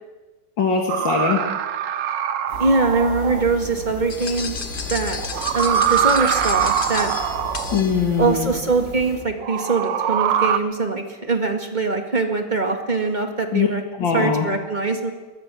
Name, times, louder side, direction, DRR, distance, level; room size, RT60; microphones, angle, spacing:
voice 1, 0.6-1.4 7.7-8.5 13.5-13.7 14.0-14.5, left 6 dB, 65° left, 1 dB, 2.7 m, -21 dB
sound 1, 0.9-3.4 5.2-7.8 9.4-10.6, right 9 dB, 65° right, 1.5 m, -23 dB
sound 2, 2.5-9.2, left 2 dB, 50° left, 7.4 m, -35 dB
voice 2, 2.6-4.6 4.9-7.2 8.2-13.8 14.1-15.1, right 3 dB, 25° right, 4 dB, 1.9 m, -22 dB
sound 3, 4.1-8.4, left 4 dB, 30° left, 1.6 m, -33 dB
22.5 x 20.5 x 6.3 m, 1.3 s
omnidirectional pair, 2.2 m